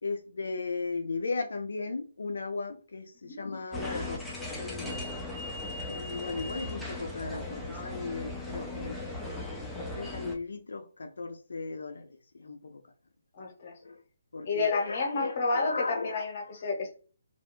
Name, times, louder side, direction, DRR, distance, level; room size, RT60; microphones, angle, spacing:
voice 1, 0.0-5.0 5.9-9.0 9.8-12.8 13.8-14.0 14.3-16.5, left 3 dB, 85° left, 0.3 m, -36 dB
sound 1, 3.7-10.4, left 2 dB, ahead, 0.4 m, -38 dB
voice 2, 13.3-13.7 14.5-17.0, left 3 dB, 40° left, 0.9 m, -30 dB
2.4 x 2.2 x 2.9 m
hypercardioid pair, 165°, 0 cm